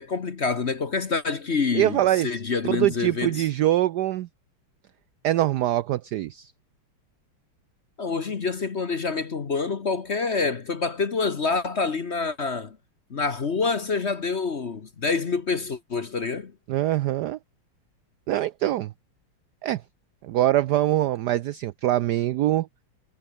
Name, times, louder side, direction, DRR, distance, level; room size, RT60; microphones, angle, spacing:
voice 1, 0.0-3.5 8.0-12.8 13.1-16.5, left 4 dB, 40° left, 1.2 m, -27 dB
voice 2, 1.7-2.3 2.6-4.3 5.2-6.5 16.7-17.4 18.3-18.9 19.6-19.8 20.2-22.7, right 14 dB, 75° right, 0.9 m, -23 dB
omnidirectional pair, 2.3 m